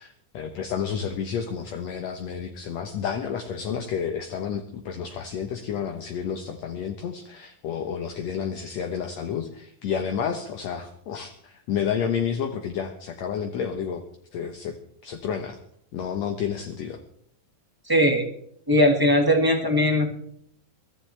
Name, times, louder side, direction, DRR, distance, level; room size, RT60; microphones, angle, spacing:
voice 1, 0.0-14.0 14.3-14.8 15.0-15.6 15.9-17.0, left 7 dB, 65° left, 5 dB, 1.7 m, -30 dB
voice 2, 17.9-18.2 18.7-20.1, equal, 20° right, 2 dB, 0.5 m, -19 dB
23.5 x 14.0 x 3.3 m, 0.67 s
omnidirectional pair, 4.2 m